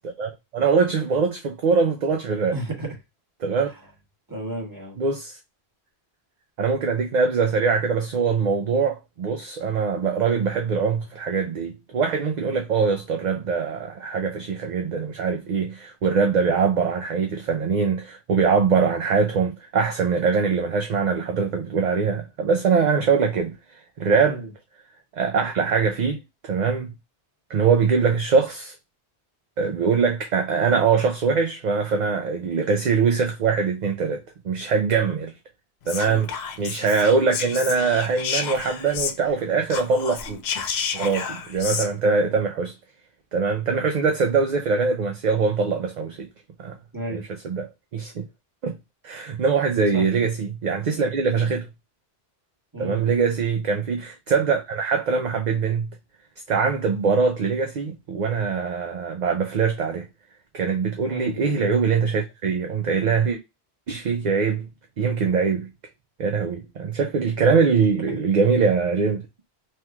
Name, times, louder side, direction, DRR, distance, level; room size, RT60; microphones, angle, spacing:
voice 1, 0.0-2.6 3.4-3.7 5.0-5.4 6.6-23.5 24.0-24.4 25.2-26.9 27.5-28.7 29.6-35.3 35.9-36.3 36.6-40.4 40.9-42.7 43.3-46.3 46.6-46.7 47.1-48.3 48.6-48.7 49.0-51.7 52.8-55.9 56.5-60.1 60.5-63.4 63.9-64.7 65.0-65.7 66.2-69.3, right 5 dB, 55° right, 0.6 m, -22 dB
voice 2, 2.5-2.9 4.3-5.0 24.3-24.5 36.1-36.2 46.9-47.2 49.9-50.0 52.7-53.1 61.1-61.4 68.1-68.2, right 1 dB, 20° right, 1.3 m, -32 dB
Whispering, 35.8-39.4 39.7-41.9, left 7 dB, 75° left, 0.8 m, -31 dB
3.3 x 3.0 x 2.3 m
omnidirectional pair, 1.1 m